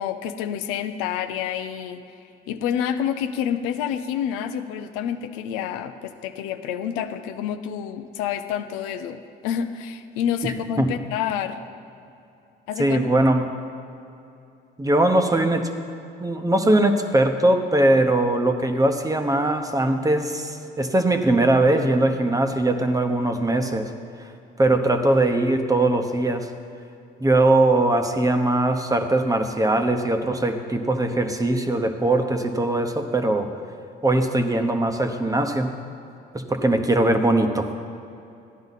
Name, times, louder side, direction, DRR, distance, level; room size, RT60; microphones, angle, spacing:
voice 1, 0.0-2.0 2.5-11.6 12.7-13.1, left 9 dB, 90° left, 9 dB, 0.6 m, -28 dB
voice 2, 12.8-13.5 14.8-15.7 16.2-23.9 24.6-26.5 27.2-33.5 34.0-35.7 36.3-37.7, right 2 dB, 15° right, 6 dB, 0.9 m, -21 dB
14.0 x 10.5 x 4.1 m, 2.7 s
supercardioid pair, 85°, 21 cm